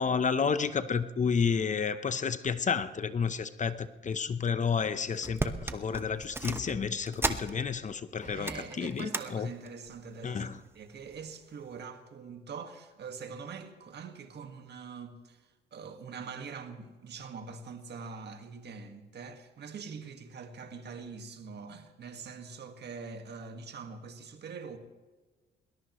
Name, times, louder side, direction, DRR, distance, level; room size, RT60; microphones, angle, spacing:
voice 1, 0.0-9.5 10.2-10.6, left 6 dB, 40° left, 0.8 m, -31 dB
sound 1, 4.7-4.9 5.2-7.9 8.2-9.3 9.7-10.0 10.8-11.2 11.7-11.8, right 2 dB, 10° right, 1.0 m, -36 dB
voice 2, 8.2-10.5 10.8-24.8, right 5 dB, 60° right, 1.7 m, -44 dB
21.5 x 20.5 x 3.1 m
cardioid pair, 90°, 20 cm